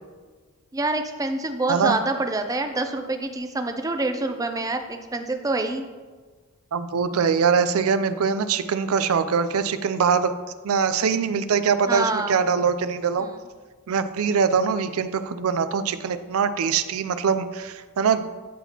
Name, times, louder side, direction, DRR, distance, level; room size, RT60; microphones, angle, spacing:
voice 1, 0.7-5.9 11.9-12.4 13.2-13.4, right 2 dB, 15° right, 7 dB, 0.5 m, -26 dB
voice 2, 6.7-10.3 10.6-13.3 13.9-18.5, right 6 dB, 75° right, 12 dB, 0.4 m, -23 dB
12.0 x 4.1 x 2.9 m, 1.4 s
head